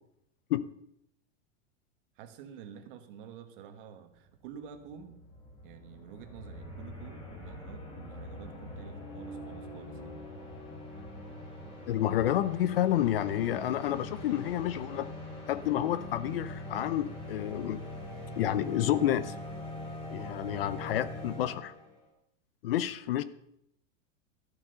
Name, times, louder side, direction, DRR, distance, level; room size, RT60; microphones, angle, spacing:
voice 1, 2.1-5.2 5.6-10.2, right 8 dB, 40° right, 8 dB, 1.3 m, -49 dB
sound 1, 4.3-4.4 4.5-22.0, left 1 dB, 15° left, 2.9 m, -43 dB
voice 2, 11.9-15.1 15.5-17.8 18.4-19.3 20.1-21.7 22.6-23.2, left 12 dB, 50° left, 16 dB, 0.5 m, -29 dB
13.0 x 7.9 x 6.6 m, 0.77 s
supercardioid pair, 175°, 39 cm